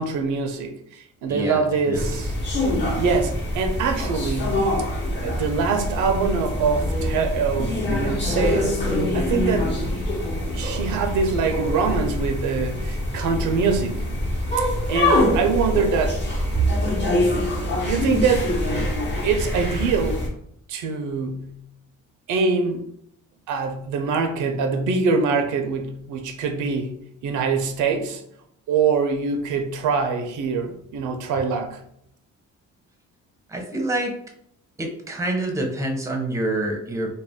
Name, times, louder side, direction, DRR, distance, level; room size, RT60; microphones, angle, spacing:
voice 1, 0.0-2.4 3.0-4.7 5.2-8.7 9.1-9.7 10.5-14.0 14.9-16.2 16.5-16.7 17.8-18.5 19.2-20.3 20.7-21.6 22.3-22.8 23.5-28.2 28.7-31.8, right 5 dB, 80° right, 5 dB, 0.5 m, -24 dB
voice 2, 1.3-1.6 1.9-2.0 33.5-34.1 34.8-37.1, right 1 dB, 10° right, 2 dB, 0.6 m, -26 dB
sound 1, 1.9-20.3, left 1 dB, 35° left, 1.0 m, -25 dB
2.4 x 2.2 x 3.4 m, 0.71 s
cardioid pair, 90°, 30 cm